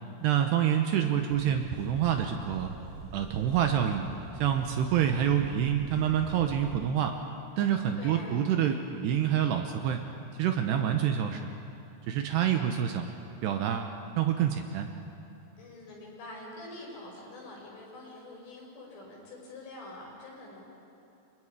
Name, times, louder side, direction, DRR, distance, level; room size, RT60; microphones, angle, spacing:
voice 1, 0.2-2.7 3.1-4.0 4.4-7.2 7.6-10.0 10.4-11.5 12.1-13.1 13.4-14.9, right 9 dB, 75° right, 5 dB, 2.6 m, -27 dB
sound 1, 1.3-6.7, right 4 dB, 50° right, 4.7 m, -44 dB
voice 2, 8.0-8.4 15.6-20.7, left 2 dB, 80° left, -3 dB, 8.2 m, -45 dB
28.5 x 26.5 x 4.9 m, 2.8 s
omnidirectional pair, 5.6 m